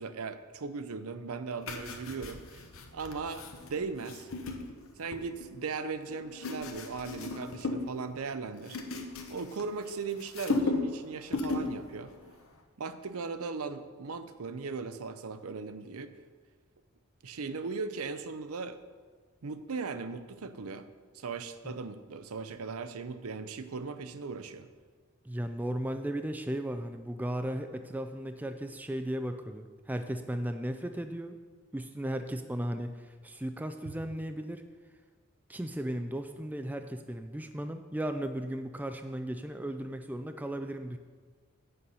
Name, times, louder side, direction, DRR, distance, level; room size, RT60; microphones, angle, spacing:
voice 1, 0.0-2.7 2.9-4.3 5.0-8.8 9.3-12.1 12.8-16.1 17.2-18.8 19.4-20.9 21.1-24.7, right 4 dB, 80° right, 10 dB, 0.6 m, -38 dB
sound 1, 1.6-5.5 6.1-7.9 8.2-9.9 10.2-11.0 11.3-11.8 12.1-12.3, left 3 dB, 70° left, 1.0 m, -36 dB
voice 2, 25.2-31.4 31.7-34.6 35.5-41.0, right 1 dB, 5° right, 7 dB, 0.3 m, -36 dB
9.0 x 6.6 x 5.5 m, 1.5 s
head